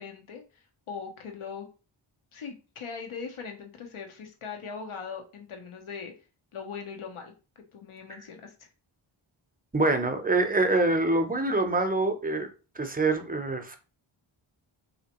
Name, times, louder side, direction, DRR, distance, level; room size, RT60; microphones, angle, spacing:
voice 1, 0.0-1.7 2.3-6.1 6.5-8.7, left 5 dB, 80° left, 3 dB, 0.9 m, -40 dB
voice 2, 9.7-12.5 12.8-13.8, right 2 dB, 20° right, 7 dB, 0.7 m, -25 dB
3.3 x 2.7 x 2.9 m, 0.33 s
cardioid pair, 50°, 48 cm